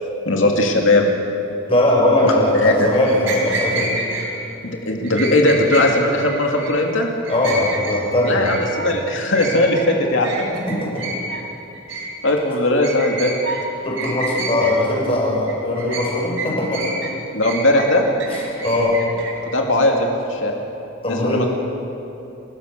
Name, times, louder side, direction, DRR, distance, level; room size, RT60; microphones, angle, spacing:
voice 1, 0.3-1.1 2.2-2.9 4.6-7.1 8.2-10.5 12.2-13.3 17.3-18.0 19.5-20.5 21.0-21.5, left 1 dB, 70° left, 1 dB, 2.5 m, -18 dB
voice 2, 1.7-3.9 7.3-8.5 10.7-11.0 13.8-17.0 18.3-19.0 21.0-21.5, left 1 dB, 30° left, -3 dB, 5.7 m, -20 dB
sound 1, 2.9-4.3 5.0-5.9 6.2-6.7 7.1-8.0 8.2-8.9 9.3-9.9 10.2-10.4 10.7-11.4 11.7-12.3 12.8-13.6 14.0-14.7 15.3-16.1 16.4-17.1 17.4-19.3, right 2 dB, 75° right, 4.0 m, -28 dB
29.5 x 13.5 x 6.6 m, 2.9 s
head